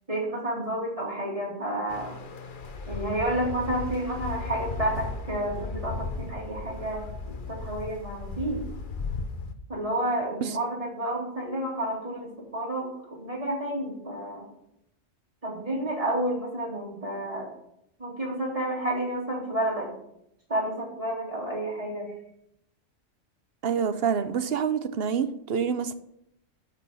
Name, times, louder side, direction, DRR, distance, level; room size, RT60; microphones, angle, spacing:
voice 1, 0.1-2.1 2.9-8.6 9.7-14.5 15.4-17.5 18.0-19.9 20.5-22.1, right 1 dB, 25° right, 3.7 m, -30 dB
sound 1, 1.9-9.5, left 3 dB, 45° left, 1.0 m, -36 dB
voice 2, 23.6-25.9, right 7 dB, 55° right, 0.9 m, -27 dB
12.5 x 6.8 x 5.6 m
omnidirectional pair, 1.3 m